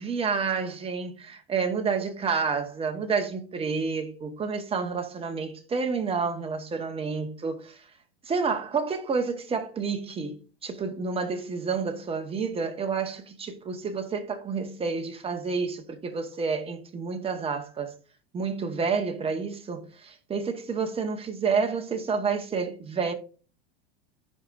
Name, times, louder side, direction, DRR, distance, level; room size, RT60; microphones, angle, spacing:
voice 1, 0.0-7.8 8.3-10.4 10.6-17.9 18.3-23.1, right 5 dB, 20° right, 1.4 m, -29 dB
15.0 x 5.2 x 2.6 m
hypercardioid pair, 120°, 30 cm